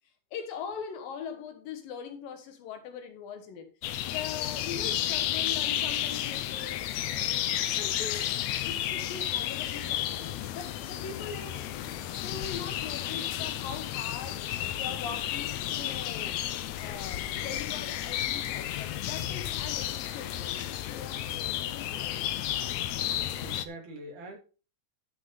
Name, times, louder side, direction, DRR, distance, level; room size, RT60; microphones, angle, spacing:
voice 1, 0.3-3.7 4.1-7.1 7.6-8.3 8.6-11.7 12.2-14.4 14.8-16.4 16.8-22.2, left 6 dB, 70° left, 2.9 m, -41 dB
sound 1, 3.8-23.6, left 12 dB, 90° left, 1.6 m, -32 dB
voice 2, 21.3-21.6 23.1-24.4, right 2 dB, 85° right, 4.7 m, -45 dB
13.5 x 6.1 x 3.9 m
omnidirectional pair, 4.3 m